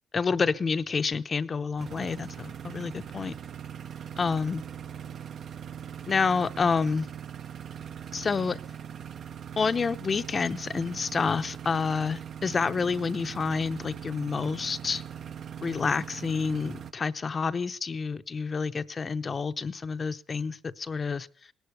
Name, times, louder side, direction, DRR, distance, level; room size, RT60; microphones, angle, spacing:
voice 1, 0.1-3.3 4.2-4.6 6.1-7.1 8.1-8.6 9.6-15.0 15.6-21.3, left 5 dB, 35° left, 11 dB, 0.7 m, -28 dB
sound 1, 1.8-16.9, right 8 dB, 55° right, 0.7 m, -41 dB
18.0 x 11.5 x 6.7 m, 0.44 s
cardioid pair, 115°, 0 cm